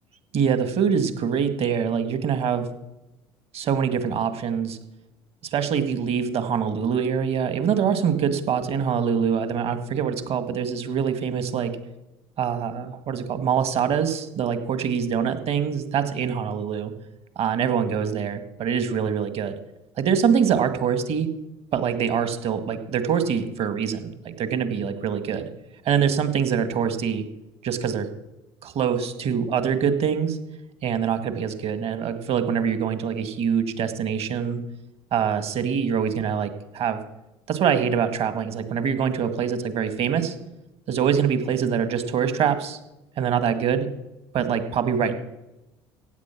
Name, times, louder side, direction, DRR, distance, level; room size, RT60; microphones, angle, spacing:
voice 1, 0.3-2.7 3.5-4.8 5.4-11.7 12.4-16.9 17.4-19.6 20.0-21.3 21.7-25.5 25.9-27.2 27.6-28.1 28.6-30.4 30.8-34.6 35.1-37.0 37.5-40.4 40.9-42.8 43.2-43.9 44.3-45.1, right 7 dB, 50° right, 9 dB, 2.0 m, -24 dB
15.5 x 8.8 x 6.1 m, 0.95 s
hypercardioid pair, 70°, 13 cm